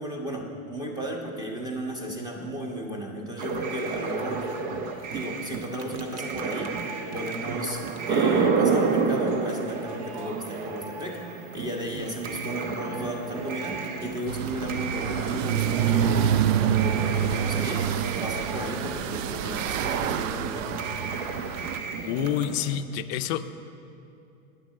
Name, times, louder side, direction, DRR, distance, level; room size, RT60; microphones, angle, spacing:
voice 1, 0.0-4.5 5.1-6.7 7.1-11.2 11.5-16.3 16.6-17.8 18.2-20.8, equal, 10° right, 0 dB, 1.3 m, -34 dB
sound 1, 3.4-22.8, right 4 dB, 40° right, 0.9 m, -31 dB
sound 2, 14.3-21.8, right 10 dB, 65° right, 0.5 m, -27 dB
voice 2, 22.1-23.5, left 10 dB, 45° left, 11 dB, 0.6 m, -28 dB
9.8 x 9.4 x 6.6 m, 2.7 s
supercardioid pair, 145°, 43 cm